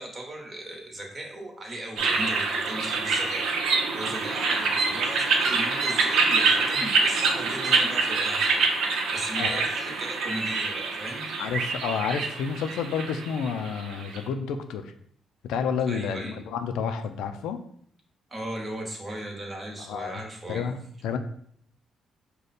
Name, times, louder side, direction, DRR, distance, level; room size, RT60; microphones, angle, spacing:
voice 1, 0.0-11.3 15.9-16.3 18.3-20.7, right 1 dB, 30° right, 0 dB, 1.1 m, -37 dB
sound 1, 2.0-14.2, right 4 dB, 80° right, 0.7 m, -26 dB
voice 2, 9.4-9.7 11.4-14.9 15.4-17.6 19.9-21.2, left 6 dB, 85° left, 8 dB, 0.4 m, -30 dB
5.0 x 2.2 x 4.1 m, 0.65 s
cardioid pair, 90°, 0 cm